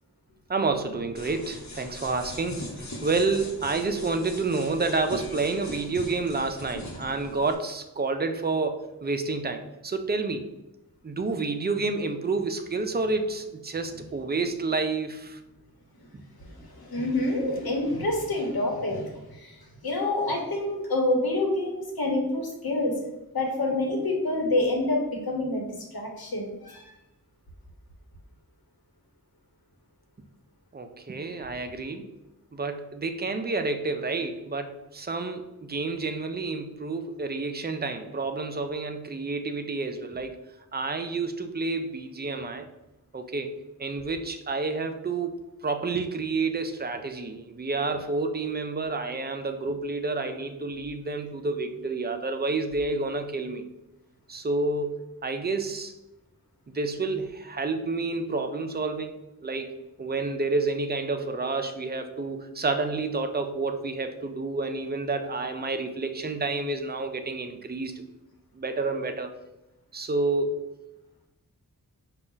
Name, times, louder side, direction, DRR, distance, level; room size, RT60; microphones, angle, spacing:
voice 1, 0.5-10.5 11.0-15.4 16.1-16.2 30.7-32.1 32.5-40.3 40.7-42.6 43.1-43.5 43.8-53.7 54.3-55.9 56.7-68.0 68.5-69.3 69.9-70.7, right 3 dB, 30° right, 7 dB, 0.4 m, -29 dB
sound 1, 1.1-7.5, left 1 dB, 50° left, 1.0 m, -40 dB
voice 2, 16.4-19.6 19.8-22.9 23.3-26.8, left 2 dB, 80° left, 1 dB, 1.1 m, -27 dB
5.1 x 2.4 x 3.8 m, 0.95 s
wide cardioid pair, 90°, 36 cm